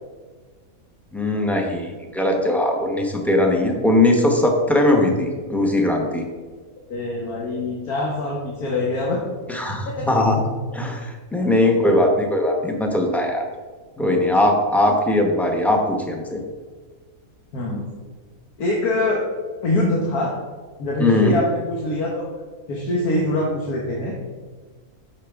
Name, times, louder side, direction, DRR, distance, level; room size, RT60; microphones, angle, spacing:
voice 1, 1.1-6.2 9.5-13.4 14.0-16.4 21.0-21.4, left 1 dB, ahead, 2 dB, 0.6 m, -20 dB
voice 2, 6.9-9.2 9.8-10.1 11.4-11.5 11.7-12.0 14.9-15.0 17.5-17.9 18.6-19.2 19.6-20.3 20.8-22.3 22.7-24.2, left 2 dB, 90° left, -3 dB, 1.6 m, -24 dB
8.6 x 5.7 x 3.5 m, 1.4 s
omnidirectional pair, 1.5 m